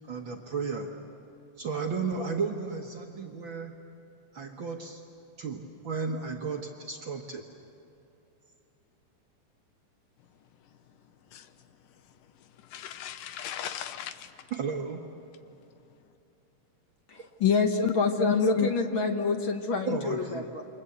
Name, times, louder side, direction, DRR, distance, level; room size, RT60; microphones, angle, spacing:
voice 1, 0.1-0.9 1.6-3.8 4.3-5.0 5.4-7.4 14.5-15.0 19.9-20.5, right 5 dB, 55° right, 2 dB, 1.5 m, -33 dB
voice 2, 12.7-14.3 17.8-17.9 18.2-18.7, left 10 dB, 85° left, 11 dB, 2.6 m, -33 dB
voice 3, 17.1-20.6, left 4 dB, 55° left, 5 dB, 1.6 m, -27 dB
28.5 x 24.0 x 8.0 m, 2.7 s
omnidirectional pair, 3.7 m